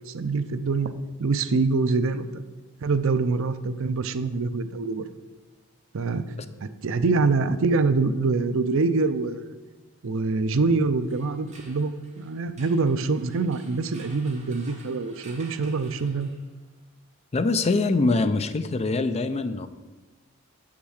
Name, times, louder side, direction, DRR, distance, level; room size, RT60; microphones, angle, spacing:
voice 1, 0.1-0.9 1.2-2.4 2.8-5.1 5.9-6.3 6.6-9.5 10.0-16.3, right 4 dB, 65° right, 11 dB, 0.5 m, -25 dB
sound 1, 11.0-16.7, right 3 dB, 35° right, 1.5 m, -51 dB
voice 2, 17.3-19.7, left 3 dB, 30° left, 10 dB, 0.5 m, -23 dB
7.3 x 5.8 x 6.4 m, 1.2 s
head